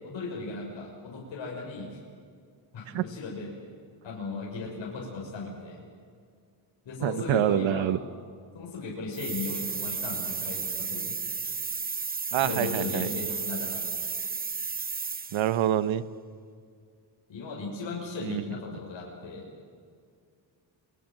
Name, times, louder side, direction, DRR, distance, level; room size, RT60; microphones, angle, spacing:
voice 1, 0.0-2.0 2.7-3.5 4.0-5.8 6.8-7.9 8.5-11.2 12.4-13.8 17.3-19.4, left 3 dB, 70° left, -3 dB, 6.5 m, -36 dB
voice 2, 7.0-8.0 12.3-13.1 15.3-16.0 18.2-18.4, right 11 dB, 85° right, 15 dB, 1.1 m, -26 dB
sound 1, 9.1-15.6, right 5 dB, 20° right, 0.8 m, -33 dB
29.0 x 24.0 x 7.7 m, 2.2 s
cardioid pair, 85°, 46 cm